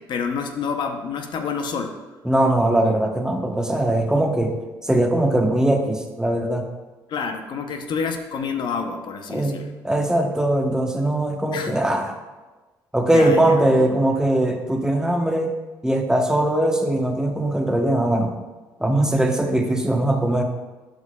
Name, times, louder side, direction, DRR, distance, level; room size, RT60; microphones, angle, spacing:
voice 1, 0.0-2.0 7.1-9.7 11.5-11.8 13.1-13.9, left 5 dB, 60° left, 6 dB, 0.6 m, -28 dB
voice 2, 2.2-4.6 4.8-6.7 9.3-9.5 9.8-12.2 12.9-15.6 15.8-18.4 18.8-20.4, right 1 dB, 5° right, 3 dB, 0.9 m, -20 dB
11.5 x 4.7 x 2.2 m, 1.2 s
supercardioid pair, 70°, 9 cm